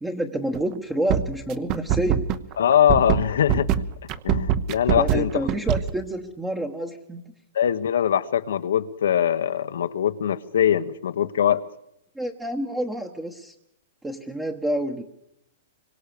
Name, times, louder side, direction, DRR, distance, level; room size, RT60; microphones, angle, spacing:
voice 1, 0.0-2.3 5.0-7.2 12.1-13.5 14.0-15.0, right 1 dB, 5° right, 4 dB, 1.1 m, -28 dB
sound 1, 0.5-0.7 1.1-5.9, right 10 dB, 25° right, 1.0 m, -22 dB
voice 2, 2.6-3.7 4.2-5.3 7.5-11.6, left 9 dB, 85° left, 9 dB, 1.4 m, -22 dB
26.0 x 24.0 x 6.9 m, 0.81 s
supercardioid pair, 175°, 0 cm